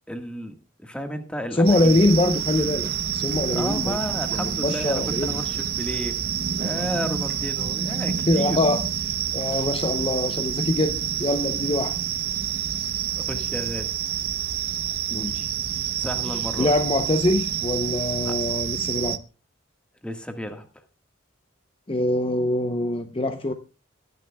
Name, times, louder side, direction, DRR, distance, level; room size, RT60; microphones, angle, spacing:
voice 1, 0.1-2.0 3.5-6.2 6.5-8.6 13.2-13.9 15.9-16.7 18.2-18.3 20.0-20.6, equal, 5° left, 1.6 m, -32 dB
voice 2, 1.5-4.0 4.3-5.4 7.9-8.0 8.3-12.0 15.1-15.5 15.7-15.9 16.6-19.2 21.9-23.5, left 1 dB, 25° left, 0.8 m, -24 dB
sound 1, 1.7-19.2, right 9 dB, 50° right, 0.8 m, -28 dB
21.5 x 10.5 x 2.3 m
head